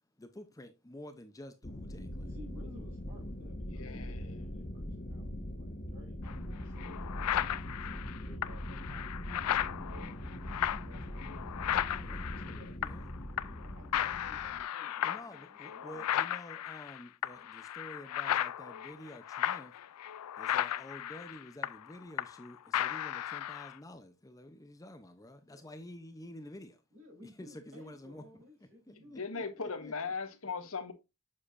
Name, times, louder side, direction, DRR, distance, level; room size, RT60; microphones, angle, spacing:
voice 1, 0.2-2.4 12.0-12.3 12.8-13.1 15.0-19.7 20.4-26.8 27.4-28.2 28.9-29.9, left 1 dB, 15° left, 0.6 m, -49 dB
sound 1, 1.6-14.6, equal, 40° left, 1.1 m, -42 dB
voice 2, 2.2-9.5 9.9-12.9 13.4-16.2 25.4-25.8 26.9-29.6, left 1 dB, 60° right, 3.5 m, -56 dB
voice 3, 3.7-4.4 28.9-30.9, left 4 dB, 70° left, 1.2 m, -39 dB
sound 2, 6.3-6.4 6.8-13.1 13.4-13.7 13.9-22.5 22.7-23.7, left 11 dB, 85° left, 0.4 m, -35 dB
7.4 x 6.5 x 2.5 m
head